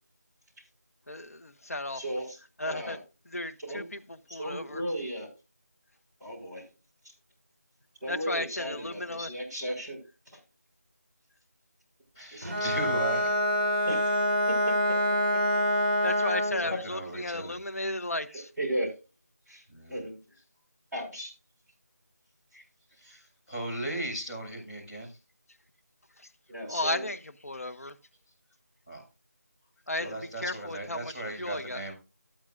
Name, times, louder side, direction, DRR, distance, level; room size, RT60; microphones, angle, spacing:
voice 1, 1.1-2.0 2.6-3.0 3.3-3.8 4.3-4.8 8.1-9.3 16.0-18.5 26.7-27.2 27.4-27.9 29.9-30.1 30.4-31.1 31.4-31.8, left 2 dB, 60° left, 0.9 m, -34 dB
voice 2, 1.9-3.0 3.6-3.9 4.3-5.3 6.2-6.7 8.0-10.4 12.3-12.5 13.8-14.1 15.3-15.4 16.5-16.8 18.3-18.9 19.5-19.6 19.9-20.2 20.9-21.3 26.5-27.1 30.0-30.1, equal, ahead, 4.6 m, -36 dB
voice 3, 12.1-13.3 16.6-17.8 19.7-20.0 22.5-22.6 23.0-25.2 28.9-29.0 30.0-31.9, right 1 dB, 20° left, 5.5 m, -37 dB
Bowed string instrument, 12.4-16.7, equal, 35° right, 1.9 m, -26 dB
13.5 x 8.9 x 2.5 m
figure-of-eight pair, 175°, 9 cm